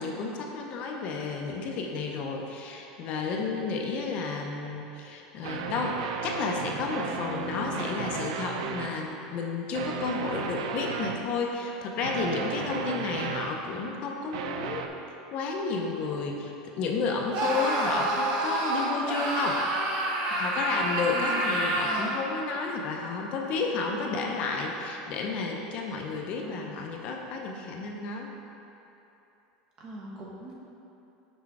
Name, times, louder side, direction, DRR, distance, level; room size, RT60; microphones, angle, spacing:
voice 1, 0.0-14.9 15.3-19.6 20.3-28.3, left 4 dB, 40° left, 1 dB, 0.6 m, -32 dB
sound 1, 5.4-9.0 9.7-11.3 12.0-13.7 14.3-14.9, right 6 dB, 90° right, 0.4 m, -34 dB
Screaming, 17.3-22.2, right 1 dB, 50° right, 0.9 m, -28 dB
voice 2, 21.1-21.4 21.8-22.1 26.4-26.7 29.8-30.5, right 2 dB, 30° right, -4 dB, 1.2 m, -41 dB
6.1 x 4.3 x 4.8 m, 2.9 s
supercardioid pair, 170°, 3 cm